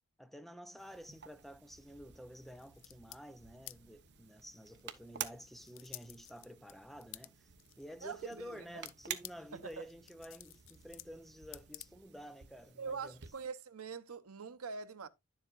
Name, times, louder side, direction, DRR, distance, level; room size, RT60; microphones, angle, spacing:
voice 1, 0.2-7.5 7.8-13.2, equal, ahead, 0.6 m, -51 dB
sound 1, 0.8-13.5, right 9 dB, 55° right, 1.1 m, -51 dB
sound 2, 2.4-12.4, left 17 dB, 60° left, 0.4 m, -55 dB
voice 2, 8.0-8.8 9.5-9.8 12.8-15.1, right 5 dB, 80° right, 0.9 m, -44 dB
11.0 x 7.5 x 2.5 m
head